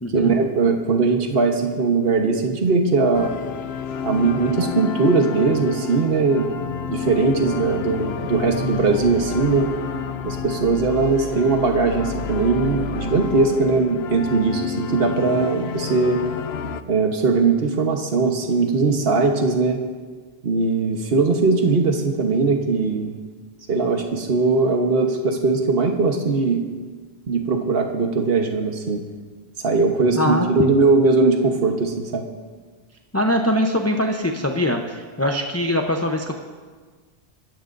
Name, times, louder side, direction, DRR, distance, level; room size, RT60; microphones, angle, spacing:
voice 1, 0.1-3.3 4.0-6.5 6.9-9.7 10.2-16.2 16.9-19.8 20.4-23.2 23.7-26.6 27.3-29.0 29.6-32.2, right 4 dB, 70° right, 3 dB, 1.4 m, -20 dB
sound 1, 3.1-16.8, left 7 dB, 80° left, 0.9 m, -30 dB
voice 2, 30.2-30.8 33.1-36.3, left 1 dB, 15° left, 1 dB, 0.8 m, -22 dB
27.0 x 14.5 x 2.6 m, 1.5 s
omnidirectional pair, 1.1 m